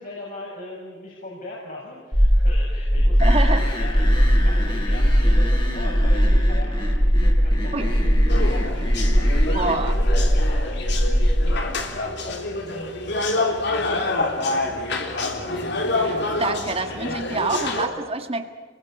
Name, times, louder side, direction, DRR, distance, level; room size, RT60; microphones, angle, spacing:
voice 1, 0.0-15.3, left 1 dB, 45° left, -4 dB, 6.9 m, -39 dB
sound 1, 2.1-11.6, equal, 5° left, 1.3 m, -19 dB
sound 2, 3.2-9.8, left 1 dB, 25° left, 5.0 m, -33 dB
voice 2, 3.2-3.7 7.7-7.9 9.5-9.9 16.0-18.5, right 3 dB, 30° right, 6 dB, 1.6 m, -26 dB
sound 3, 8.3-17.9, left 2 dB, 60° left, 3.4 m, -27 dB
30.0 x 22.0 x 8.9 m, 1.5 s
head